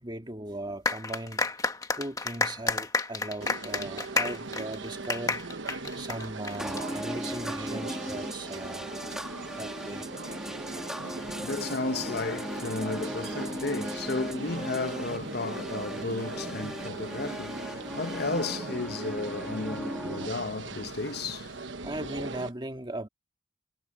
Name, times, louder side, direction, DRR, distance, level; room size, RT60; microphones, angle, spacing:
voice 1, 0.0-1.6 2.0-5.4 6.0-10.1 21.8-23.1, right 1 dB, 25° right, 1.9 m, -38 dB
sound 1, 0.8-6.8, left 3 dB, 20° left, 1.2 m, -30 dB
sound 2, 3.4-22.5, right 3 dB, 70° right, 1.2 m, -40 dB
sound 3, 6.6-20.3, equal, 5° right, 2.6 m, -38 dB
voice 2, 11.0-21.6, left 3 dB, 55° left, 1.0 m, -33 dB
head